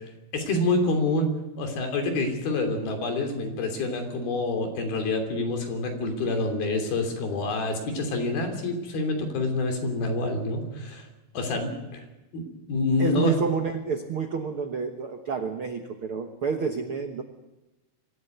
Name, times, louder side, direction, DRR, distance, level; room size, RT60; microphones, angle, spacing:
voice 1, 0.3-1.3 1.6-11.0 11.3-12.0 12.3-13.3, left 2 dB, 75° left, 4 dB, 5.1 m, -27 dB
voice 2, 13.0-17.2, right 5 dB, 70° right, 6 dB, 1.3 m, -29 dB
25.0 x 14.5 x 9.4 m, 1.0 s
omnidirectional pair, 4.3 m